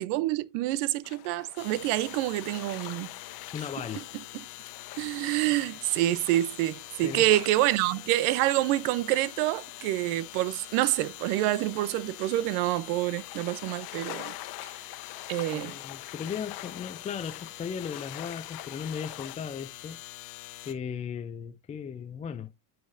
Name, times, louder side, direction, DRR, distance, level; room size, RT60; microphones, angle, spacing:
voice 1, 0.0-3.1 4.3-4.5 5.0-14.3 15.3-15.8, right 15 dB, 75° right, 0.7 m, -27 dB
sound 1, 1.0-19.4, left 15 dB, 55° left, 1.1 m, -46 dB
sound 2, 1.6-20.7, left 17 dB, 80° left, 1.2 m, -45 dB
voice 2, 3.5-4.1 7.0-7.3 15.5-20.0 20.7-22.5, left 7 dB, 20° left, 0.3 m, -36 dB
9.4 x 6.0 x 2.5 m
supercardioid pair, 110°, 44 cm